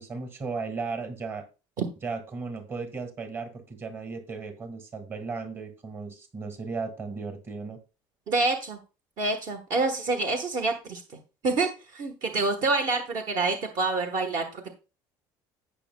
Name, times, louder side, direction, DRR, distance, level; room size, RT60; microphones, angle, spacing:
voice 1, 0.0-1.4 2.0-7.8, right 4 dB, 25° right, 7 dB, 1.6 m, -35 dB
voice 2, 8.3-8.8 9.2-11.0 11.4-14.7, right 3 dB, 45° right, 5 dB, 1.2 m, -27 dB
16.5 x 6.1 x 2.2 m, 0.30 s
cardioid pair, 170°, 9 cm